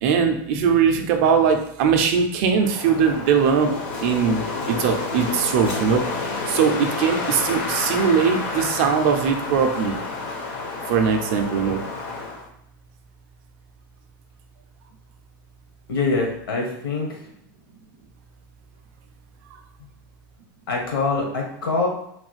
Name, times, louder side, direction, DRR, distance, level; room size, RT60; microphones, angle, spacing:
voice 1, 0.0-3.7 4.0-4.4 4.7-6.0 6.5-10.0 10.9-11.8, right 6 dB, 35° right, 5 dB, 0.4 m, -20 dB
Wind, 2.6-12.5, left 3 dB, 40° left, 0.5 m, -30 dB
voice 2, 15.9-17.2 20.7-21.9, left 3 dB, 75° left, 0 dB, 1.0 m, -24 dB
3.1 x 2.3 x 3.1 m, 0.74 s
supercardioid pair, 175°, 12 cm